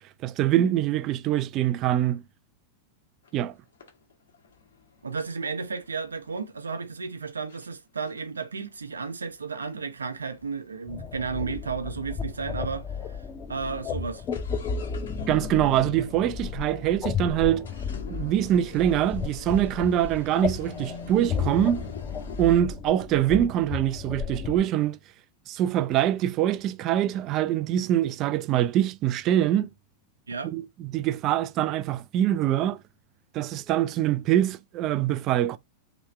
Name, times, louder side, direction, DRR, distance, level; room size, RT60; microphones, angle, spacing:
voice 1, 0.2-2.2 3.3-3.5 15.3-17.7 18.1-21.8 22.4-25.0 25.5-29.7 30.4-32.8 33.3-35.6, right 11 dB, 35° right, 0.3 m, -24 dB
sound 1, 3.2-3.4 3.8-6.4 7.0-7.1 7.5-7.7 8.0-11.7 12.0-12.1 12.3-12.4 13.0-13.2 13.5-22.6, left 4 dB, 65° left, 1.3 m, -45 dB
voice 2, 5.0-13.2 13.5-14.2 30.3-30.5, right 5 dB, 75° right, 0.7 m, -33 dB
sound 2, 10.9-24.6, left 6 dB, 30° left, 0.7 m, -33 dB
3.2 x 3.0 x 4.2 m
figure-of-eight pair, 90°, 0 cm